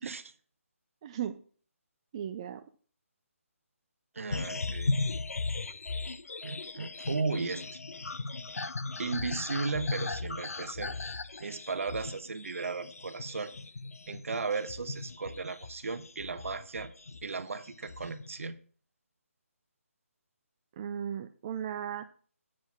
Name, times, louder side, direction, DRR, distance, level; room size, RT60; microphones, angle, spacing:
voice 1, 1.0-1.4 2.1-2.6 20.8-22.1, right 9 dB, 25° right, 0.4 m, -36 dB
voice 2, 4.1-4.9 6.4-7.6 9.0-11.0 11.4-13.5 14.1-16.9 17.2-18.6, right 4 dB, 65° right, 1.0 m, -35 dB
sound 1, 4.3-17.4 17.7-18.4, left 3 dB, 80° left, 0.6 m, -37 dB
7.6 x 6.2 x 6.0 m
figure-of-eight pair, 155°, 8 cm